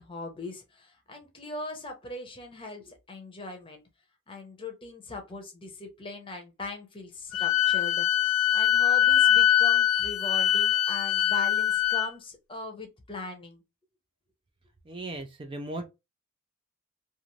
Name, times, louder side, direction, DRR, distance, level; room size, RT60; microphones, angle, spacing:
voice 1, 0.0-3.8 4.3-13.6, left 2 dB, 25° left, 0.7 m, -40 dB
Wind instrument woodwind instrument, 7.3-12.1, left 11 dB, 75° left, 0.3 m, -23 dB
voice 2, 14.9-15.9, right 2 dB, 25° right, 0.4 m, -37 dB
2.5 x 2.5 x 3.0 m
head